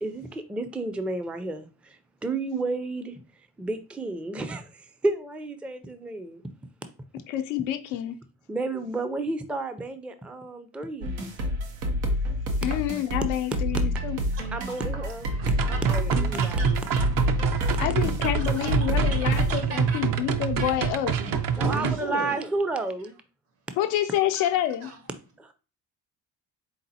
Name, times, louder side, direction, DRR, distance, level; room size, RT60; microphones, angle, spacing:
voice 1, 0.0-3.2 3.6-6.4 8.5-11.3 14.5-15.3 15.6-16.9 21.5-23.1 25.4-25.5, right 2 dB, 5° right, 0.4 m, -31 dB
voice 2, 7.3-8.2 12.6-14.2 17.8-21.1 23.8-24.9, left 12 dB, 80° left, 0.6 m, -28 dB
sound 1, 11.0-19.5, equal, 85° right, 0.8 m, -28 dB
voice 3, 14.7-15.5 16.4-16.7 17.6-17.8 18.2-20.0 20.6-20.8 21.2-22.4 24.1-24.9, right 3 dB, 65° right, 1.5 m, -37 dB
sound 2, 15.4-22.0, right 6 dB, 45° right, 0.6 m, -26 dB
3.9 x 3.8 x 2.7 m
hypercardioid pair, 55°, 47 cm